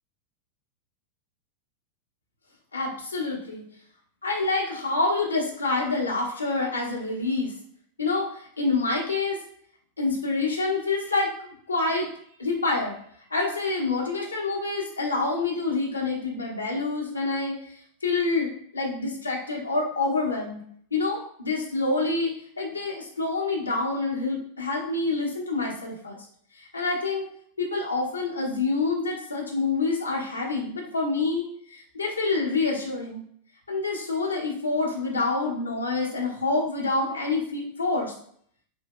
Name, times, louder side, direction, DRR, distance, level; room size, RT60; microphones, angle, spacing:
voice 1, 2.7-3.6 4.2-7.5 8.0-9.4 10.0-12.1 12.4-13.0 13.3-17.7 18.0-20.6 20.9-26.2 26.5-27.3 27.6-33.2 33.7-38.1, left 3 dB, 80° left, -3 dB, 1.0 m, -27 dB
6.1 x 2.8 x 2.2 m, 0.63 s
figure-of-eight pair, 90°, 0 cm